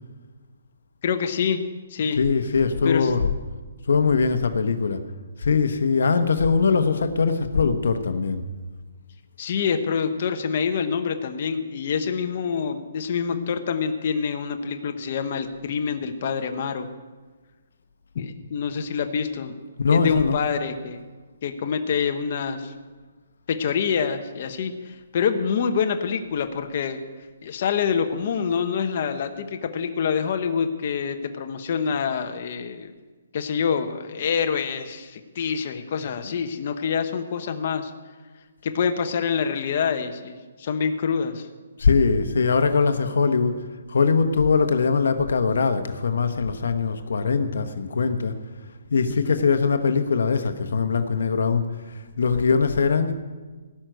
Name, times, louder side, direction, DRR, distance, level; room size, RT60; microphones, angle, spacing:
voice 1, 1.0-1.6 1.9-2.2 2.8-3.1 9.4-16.9 18.1-19.6 19.9-21.0 21.4-22.7 23.5-27.0 27.4-32.9 33.3-37.9 38.6-41.5 49.2-49.4, left 6 dB, 45° left, 6 dB, 1.1 m, -26 dB
voice 2, 2.1-3.3 3.9-5.0 5.4-8.4 19.8-20.4 36.2-36.4 41.8-43.6 43.9-48.3 48.9-53.1, left 5 dB, 75° left, 9 dB, 1.1 m, -21 dB
18.0 x 6.2 x 9.2 m, 1.3 s
hypercardioid pair, 165°, 0 cm